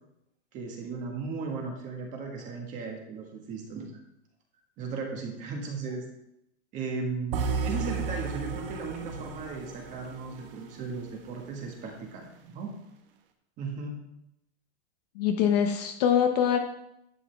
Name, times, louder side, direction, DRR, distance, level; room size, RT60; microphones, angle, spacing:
voice 1, 0.5-3.9 4.8-6.1 6.7-12.7 13.6-14.0, right 4 dB, 20° right, 2 dB, 1.5 m, -36 dB
sound 1, 7.3-11.4, right 5 dB, 50° right, 1.2 m, -34 dB
voice 2, 15.2-16.6, left 8 dB, 35° left, 5 dB, 0.7 m, -24 dB
11.0 x 8.2 x 3.4 m, 0.81 s
supercardioid pair, 175°, 35 cm